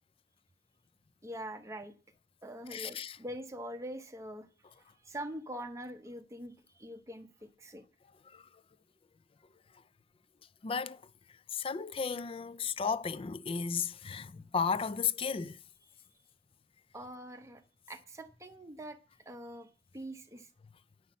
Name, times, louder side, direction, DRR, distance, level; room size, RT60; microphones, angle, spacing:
voice 1, 1.2-1.9 2.4-4.5 4.8-7.8 15.8-15.9 16.9-20.5, right 1 dB, 15° right, 0.7 m, -44 dB
voice 2, 2.7-3.2 8.3-8.4 10.6-11.0 11.5-15.6, left 6 dB, 30° left, 0.4 m, -34 dB
9.4 x 5.7 x 7.2 m
head